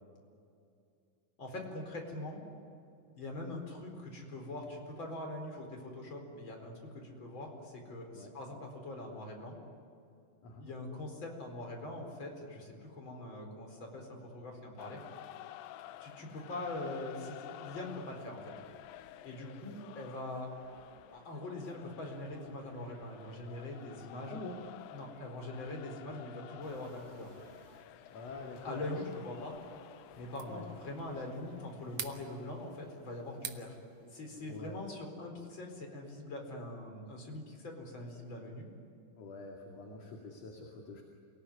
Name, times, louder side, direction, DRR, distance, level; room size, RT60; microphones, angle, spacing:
voice 1, 1.4-2.4 3.2-9.6 10.6-15.0 16.0-18.4 19.2-20.5 21.1-24.4 24.9-27.3 28.6-29.6 30.2-38.7, left 2 dB, 30° left, 2 dB, 4.9 m, -43 dB
sound 1, 14.8-33.3, left 13 dB, 75° left, 2.2 m, -52 dB
sound 2, 26.6-35.0, right 8 dB, 70° right, 1.4 m, -51 dB
voice 2, 28.1-28.8 30.4-30.7 34.5-34.8 39.2-41.0, left 2 dB, 45° left, 0 dB, 3.0 m, -46 dB
28.5 x 19.0 x 10.0 m, 2.5 s
omnidirectional pair, 4.6 m